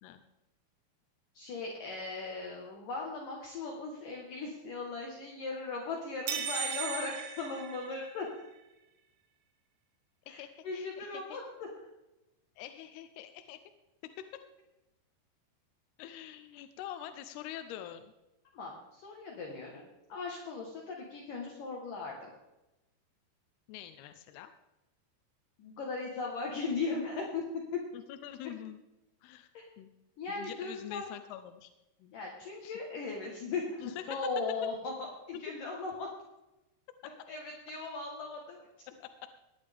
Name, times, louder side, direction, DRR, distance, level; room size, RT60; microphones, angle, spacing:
voice 1, 1.3-8.5 10.3-11.7 18.5-22.2 25.6-27.8 29.5-29.6 30.2-31.1 32.1-34.9 35.3-36.1 37.3-38.7, left 4 dB, 60° left, -1 dB, 2.6 m, -38 dB
sound 1, 6.3-8.4, right 8 dB, 75° right, 3.2 m, -37 dB
voice 2, 10.3-11.4 12.6-13.6 14.0-14.4 16.0-18.1 23.7-24.5 27.9-28.8 29.2-29.5 29.8-29.9 30.3-31.7 32.0-32.1 32.6-32.8 33.8-34.2 39.0-39.1, left 12 dB, 80° left, 9 dB, 2.4 m, -45 dB
18.0 x 10.5 x 3.5 m, 0.98 s
omnidirectional pair, 5.1 m